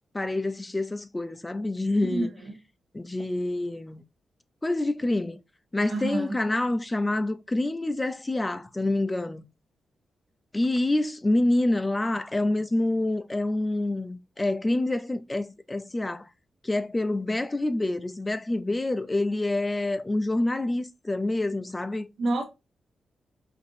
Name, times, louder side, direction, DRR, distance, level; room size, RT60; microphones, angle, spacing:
voice 1, 0.1-2.3 2.9-4.0 4.6-5.4 5.7-9.5 10.5-16.3 16.6-22.1, left 2 dB, 15° left, 0.3 m, -27 dB
voice 2, 5.9-6.4 22.2-22.4, right 2 dB, 65° right, 0.7 m, -27 dB
4.1 x 2.6 x 2.6 m
cardioid pair, 110°, 0 cm